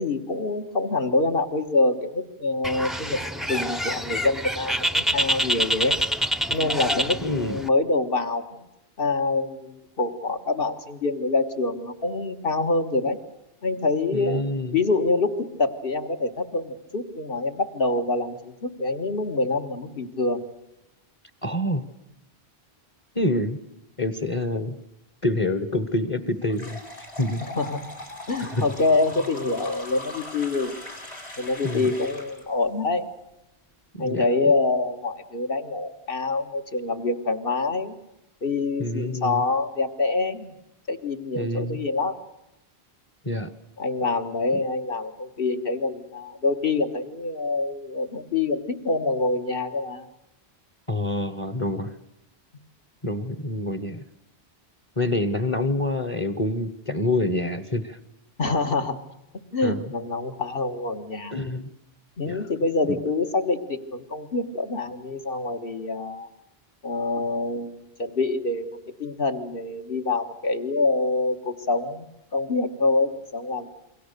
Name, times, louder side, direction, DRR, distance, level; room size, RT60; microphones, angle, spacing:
voice 1, 0.0-5.9 6.5-8.6 9.0-13.2 13.6-14.4 14.7-20.4 27.4-27.8 28.3-30.7 31.4-33.1 34.0-38.0 38.4-40.5 40.9-42.2 43.8-50.1 58.4-59.0 59.5-61.3 62.2-66.3 66.8-73.7, left 3 dB, 60° left, 6 dB, 1.9 m, -26 dB
Bird, 2.6-7.7, equal, ahead, 0.7 m, -26 dB
voice 2, 7.2-7.6 14.1-14.8 21.4-21.8 23.1-23.6 24.0-24.8 25.2-26.8 27.2-27.4 28.4-28.6 31.6-31.9 33.9-34.2 38.8-39.4 41.3-41.8 43.2-43.5 50.9-51.9 53.0-54.0 55.0-58.0 59.6-59.8 61.3-61.7 62.2-62.4 62.9-63.0, left 1 dB, 30° left, 11 dB, 1.3 m, -26 dB
sound 1, 26.5-32.4, left 2 dB, 80° left, 5.5 m, -40 dB
27.5 x 23.5 x 6.8 m, 0.91 s
omnidirectional pair, 1.1 m